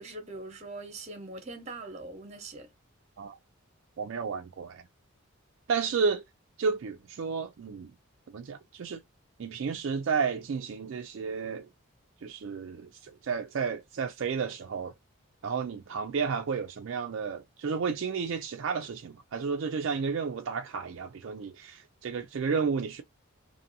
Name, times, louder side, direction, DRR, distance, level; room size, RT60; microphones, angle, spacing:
voice 1, 0.0-2.7, right 2 dB, 30° right, 0.8 m, -42 dB
voice 2, 4.0-4.8 5.7-6.2 6.6-7.9 8.3-9.0 9.4-11.7 12.2-14.9 15.4-23.0, right 5 dB, 60° right, 0.4 m, -32 dB
2.6 x 2.6 x 2.6 m
head